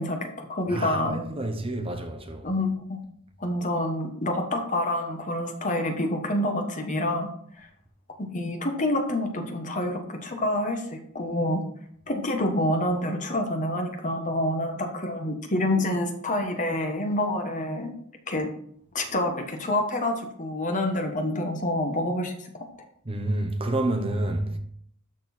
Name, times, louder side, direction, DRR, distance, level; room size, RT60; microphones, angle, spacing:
voice 1, 0.0-1.2 2.4-3.0 3.4-7.3 8.2-11.6 12.1-17.9 18.3-18.5 18.9-22.3, left 1 dB, 35° left, 1.4 m, -27 dB
voice 2, 0.7-2.5 23.0-24.6, right 1 dB, 25° right, 1.1 m, -29 dB
12.5 x 4.5 x 4.4 m
head